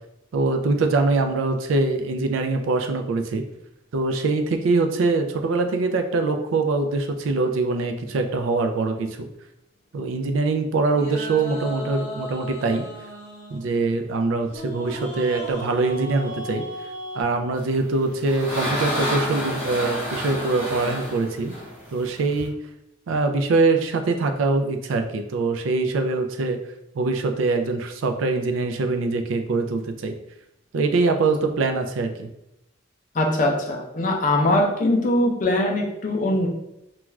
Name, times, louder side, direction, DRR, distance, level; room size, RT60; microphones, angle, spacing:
voice 1, 0.3-3.4 3.9-9.3 9.9-12.9 13.5-16.7 17.1-21.5 21.9-22.5 23.1-26.6 26.9-30.1 30.7-32.3, right 3 dB, 75° right, 6 dB, 0.3 m, -23 dB
sound 1, 10.9-17.2, equal, 55° left, 0.9 m, -36 dB
sound 2, 17.8-22.5, equal, 10° right, 0.9 m, -29 dB
voice 2, 33.1-36.5, left 1 dB, 40° left, 0 dB, 0.4 m, -21 dB
2.4 x 2.3 x 3.0 m, 0.87 s
head